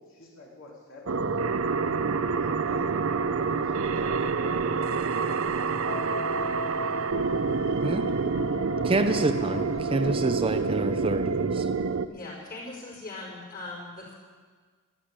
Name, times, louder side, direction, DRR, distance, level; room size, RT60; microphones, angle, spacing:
voice 1, 0.0-1.4 2.6-6.5 6.9-7.8 8.7-9.4 9.7-10.0, left 1 dB, 65° left, -3 dB, 3.4 m, -49 dB
sound 1, 1.1-12.1, right 5 dB, 70° right, 0.6 m, -27 dB
Wind instrument woodwind instrument, 5.8-10.5, equal, 90° left, 2.3 m, -36 dB
voice 2, 8.8-11.7, right 2 dB, 25° right, 8 dB, 0.5 m, -28 dB
voice 3, 12.1-14.1, left 2 dB, 40° left, -1 dB, 5.0 m, -40 dB
13.0 x 10.5 x 8.6 m, 1.5 s
head